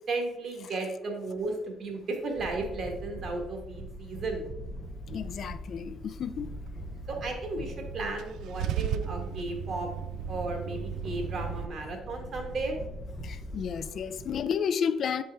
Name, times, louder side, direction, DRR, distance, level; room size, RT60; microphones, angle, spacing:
voice 1, 0.1-4.5 7.1-9.9 10.3-12.8, right 3 dB, 45° right, 3 dB, 1.4 m, -34 dB
sound 1, 2.4-14.4, equal, 5° left, 1.1 m, -41 dB
voice 2, 5.1-6.5 13.2-15.2, left 7 dB, 45° left, 12 dB, 0.4 m, -31 dB
Car / Engine starting / Idling, 8.2-11.7, right 10 dB, 75° right, 0.3 m, -34 dB
7.7 x 4.4 x 3.4 m, 0.95 s
cardioid pair, 135°, 0 cm